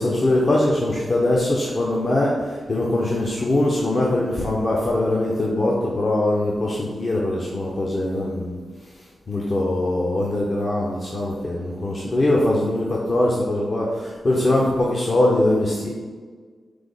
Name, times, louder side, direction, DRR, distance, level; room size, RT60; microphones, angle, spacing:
voice 1, 0.0-8.6 9.3-15.9, left 1 dB, 50° left, -4 dB, 0.6 m, -22 dB
4.8 x 2.0 x 3.8 m, 1.5 s
supercardioid pair, 45°, 0 cm